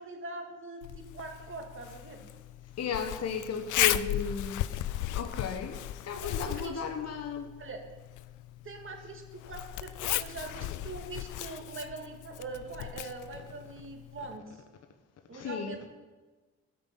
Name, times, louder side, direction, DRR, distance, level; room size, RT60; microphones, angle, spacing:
voice 1, 0.0-2.3 6.2-6.8 7.6-7.8 8.6-14.6 15.3-15.8, right 3 dB, 45° right, 2.0 m, -42 dB
Zipper (clothing), 0.8-14.4, left 14 dB, 85° left, 0.5 m, -36 dB
voice 2, 2.8-7.6 15.3-15.8, left 6 dB, 55° left, 1.1 m, -35 dB
13.0 x 5.5 x 7.5 m
cardioid pair, 90°, 30 cm